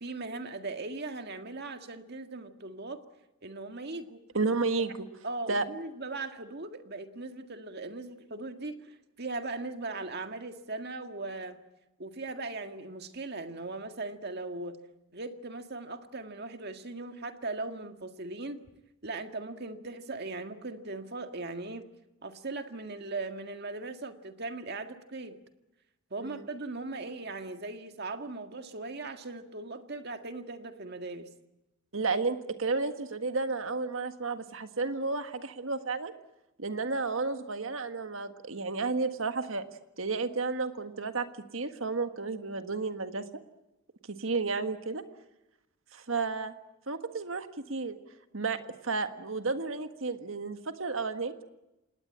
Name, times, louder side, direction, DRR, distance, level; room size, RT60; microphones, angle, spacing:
voice 1, 0.0-3.0 3.4-4.2 5.2-11.6 12.0-14.8 15.1-18.6 19.0-21.8 22.2-25.4 26.1-31.3, right 3 dB, 50° right, 7 dB, 1.9 m, -39 dB
voice 2, 4.3-5.1 5.5-5.7 26.2-26.4 31.9-36.1 36.6-39.6 40.0-41.3 41.5-43.3 44.1-45.0 45.9-46.5 46.9-48.0 48.3-51.4, right 4 dB, 70° right, 8 dB, 1.7 m, -32 dB
27.0 x 19.5 x 8.8 m, 0.97 s
head